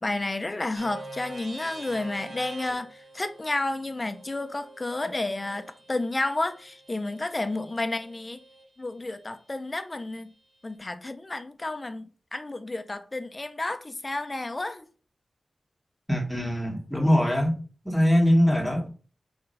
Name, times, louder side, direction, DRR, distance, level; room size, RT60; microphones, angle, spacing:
voice 1, 0.0-8.4 8.8-10.3 10.6-14.8, left 2 dB, 30° left, 0.6 m, -31 dB
sound 1, 0.7-8.6, right 2 dB, 65° right, 1.6 m, -46 dB
voice 2, 16.1-17.5 17.8-18.9, equal, 5° left, 1.6 m, -22 dB
4.3 x 4.3 x 5.2 m
wide cardioid pair, 110°, 0 cm